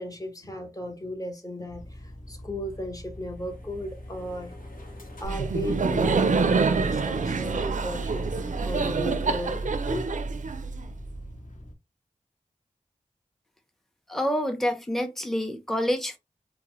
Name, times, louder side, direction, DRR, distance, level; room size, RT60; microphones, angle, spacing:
voice 1, 0.0-4.5 5.2-10.0, left 1 dB, 25° left, 1.0 m, -36 dB
sound 1, 1.7-11.7, left 1 dB, 65° left, 1.1 m, -44 dB
sound 2, 3.0-10.3, left 2 dB, 85° left, 0.7 m, -50 dB
Laughter, 5.2-11.1, right 4 dB, 65° right, 0.4 m, -26 dB
voice 2, 14.1-16.2, equal, ahead, 0.7 m, -27 dB
2.8 x 2.1 x 2.9 m
cardioid pair, 40°, 14 cm